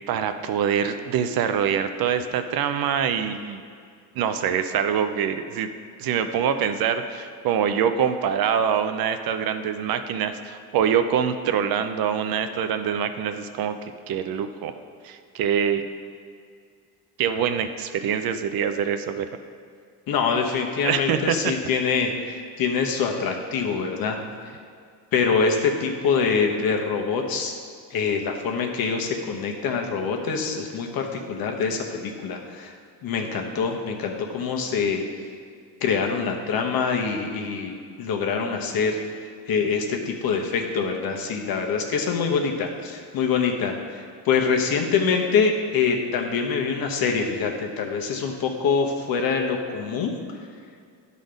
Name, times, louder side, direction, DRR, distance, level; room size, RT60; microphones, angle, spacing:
voice 1, 0.1-3.6 4.1-5.7 6.0-13.8 14.1-14.7 15.0-15.8 17.2-19.3 20.8-21.4, right 8 dB, 60° right, 9 dB, 0.6 m, -24 dB
voice 2, 20.1-24.2 25.1-27.6 27.9-32.7 33.0-35.0 35.8-39.0 39.5-50.1, left 5 dB, 55° left, 2 dB, 1.1 m, -25 dB
11.0 x 4.1 x 5.1 m, 2.2 s
cardioid pair, 135°, 41 cm